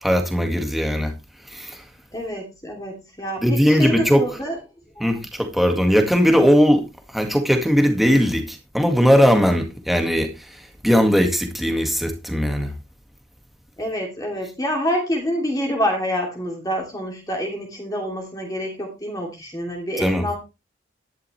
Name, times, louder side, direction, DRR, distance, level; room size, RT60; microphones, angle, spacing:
voice 1, 0.0-1.1 1.5-1.8 3.4-4.3 5.0-6.9 7.1-12.7 20.0-20.3, equal, ahead, 2.0 m, -19 dB
voice 2, 2.1-4.6 5.0-5.1 13.8-20.4, equal, 20° left, 2.9 m, -27 dB
11.5 x 11.0 x 3.3 m
head